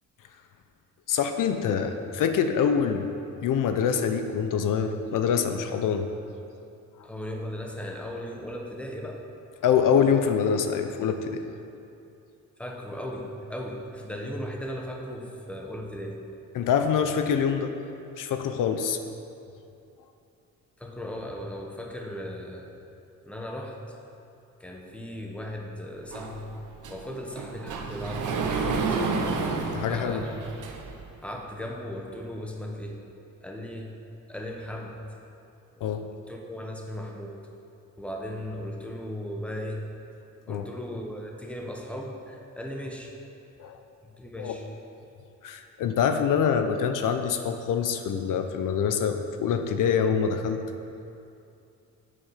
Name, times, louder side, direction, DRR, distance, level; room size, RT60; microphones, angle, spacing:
voice 1, 1.1-3.1 3.4-6.1 9.6-11.4 16.5-17.7 18.2-19.0 29.7-30.2 35.8-36.0 40.5-40.7 43.6-43.8 44.4-44.6 45.4-50.6, left 7 dB, 75° left, 7 dB, 0.8 m, -25 dB
voice 2, 7.0-9.2 12.6-16.2 20.8-22.7 23.2-23.7 24.6-26.5 26.9-29.0 29.8-30.4 31.2-33.0 33.4-33.9 34.3-35.0 35.7-35.9 36.3-37.3 38.0-39.8 40.4-43.1 44.0-44.7, equal, 5° left, 0 dB, 1.1 m, -37 dB
Sliding door, 26.1-31.1, right 4 dB, 70° right, 1.1 m, -31 dB
8.6 x 8.6 x 5.7 m, 2.6 s
cardioid pair, 130°, 32 cm